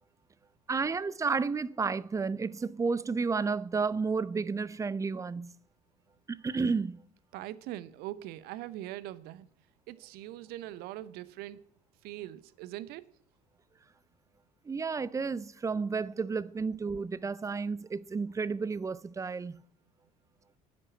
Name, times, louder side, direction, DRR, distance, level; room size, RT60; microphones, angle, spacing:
voice 1, 0.7-5.5 6.3-7.0 14.7-19.6, right 4 dB, 15° right, 0.5 m, -32 dB
voice 2, 7.3-9.5 9.9-11.6 12.0-13.1, right 14 dB, 50° right, 0.7 m, -42 dB
10.5 x 7.7 x 8.2 m
figure-of-eight pair, 55°, 20 cm